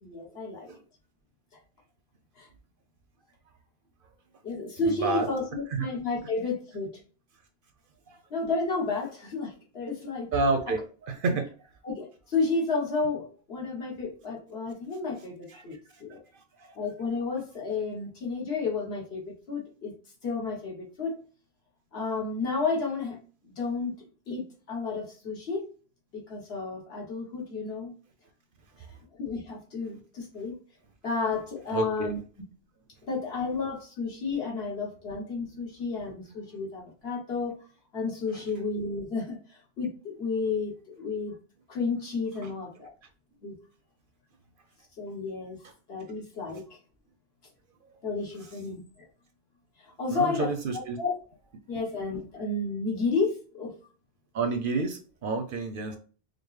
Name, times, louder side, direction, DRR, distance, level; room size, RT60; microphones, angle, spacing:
voice 1, 0.0-0.7 2.4-2.5 4.4-6.9 8.3-10.3 11.8-16.2 16.7-19.9 20.2-21.2 21.9-23.9 24.3-25.7 26.1-27.9 29.2-30.5 31.0-32.2 33.1-37.6 37.9-41.3 41.7-42.9 43.4-43.5 45.0-45.6 45.9-46.6 48.0-48.8 50.0-51.1 51.7-53.7, left 4 dB, 65° left, -2 dB, 1.4 m, -32 dB
voice 2, 4.8-5.3 5.7-5.9 10.3-10.8 11.1-11.4 15.5-15.6 16.6-16.8 31.7-32.1 38.3-38.4 42.4-42.5 46.5-46.6 50.1-51.0 54.3-56.0, right 3 dB, 60° right, 6 dB, 0.6 m, -29 dB
4.9 x 2.0 x 3.2 m, 0.38 s
omnidirectional pair, 1.1 m